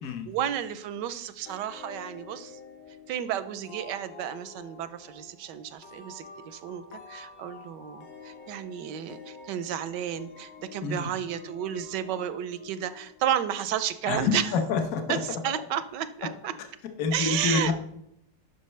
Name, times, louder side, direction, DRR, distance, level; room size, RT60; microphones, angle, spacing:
voice 1, 0.2-2.6 3.1-14.4 15.1-16.5 17.1-17.7, right 10 dB, 80° right, 13 dB, 1.2 m, -32 dB
sound 1, 1.5-13.9, left 4 dB, 90° left, 1.8 m, -49 dB
voice 2, 14.0-15.2 17.0-17.7, left 5 dB, 55° left, 5 dB, 1.3 m, -27 dB
11.0 x 5.8 x 3.2 m, 0.75 s
omnidirectional pair, 1.9 m